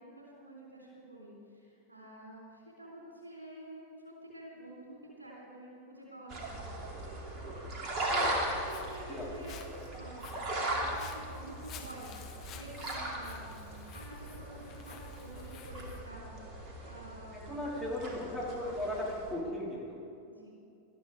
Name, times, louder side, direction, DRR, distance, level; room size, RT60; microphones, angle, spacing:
voice 1, 0.0-6.8 8.5-16.3 16.8-17.5 18.9-19.1 20.2-20.6, right 1 dB, 80° right, -3 dB, 3.7 m, -49 dB
sound 1, 6.3-19.3, right 1 dB, 35° right, 2.6 m, -38 dB
voice 2, 8.1-8.5 9.1-9.2 17.5-20.0, left 1 dB, 10° right, -6 dB, 4.1 m, -37 dB
Walk footsteps, 8.4-16.0, left 8 dB, 35° left, 1.2 m, -53 dB
19.0 x 13.0 x 3.5 m, 2.5 s
figure-of-eight pair, 90°, 0 cm